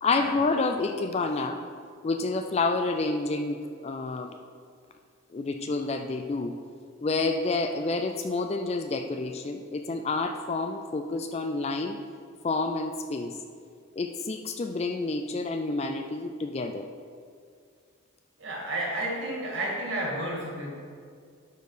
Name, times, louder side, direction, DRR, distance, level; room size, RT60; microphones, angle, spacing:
voice 1, 0.0-1.6 2.0-4.3 5.3-6.5 7.0-12.0 12.4-13.4 14.0-16.9, left 3 dB, 30° left, 6 dB, 0.3 m, -29 dB
voice 2, 18.4-20.7, right 1 dB, 60° right, -4 dB, 2.4 m, -31 dB
11.5 x 4.5 x 4.9 m, 2.2 s
head